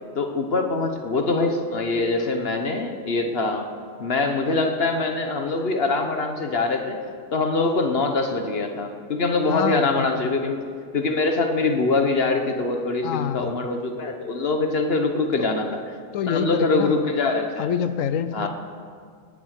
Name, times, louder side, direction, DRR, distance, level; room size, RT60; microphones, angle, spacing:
voice 1, 0.1-3.7 4.0-7.0 7.3-10.6 10.9-15.8 16.3-17.7 18.3-18.5, left 3 dB, 50° left, 5 dB, 1.3 m, -23 dB
voice 2, 9.5-10.3 13.0-13.6 16.1-17.0 17.6-18.5, left 8 dB, 80° left, 12 dB, 1.1 m, -26 dB
19.0 x 7.5 x 6.6 m, 2.1 s
omnidirectional pair, 1.4 m